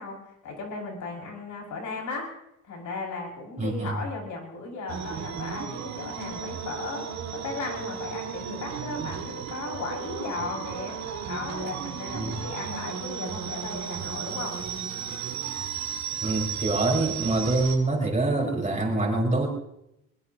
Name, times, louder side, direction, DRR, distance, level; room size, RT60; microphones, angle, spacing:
voice 1, 0.0-2.4 2.6-11.0 11.3-14.6, left 3 dB, 75° left, -1 dB, 5.8 m, -36 dB
voice 2, 3.6-4.0 12.1-12.4 16.2-19.5, right 2 dB, 25° right, -1 dB, 4.6 m, -25 dB
sound 1, 4.9-17.8, right 7 dB, 65° right, 2.2 m, -34 dB
22.0 x 21.5 x 2.8 m, 0.81 s
cardioid pair, 90°, 30 cm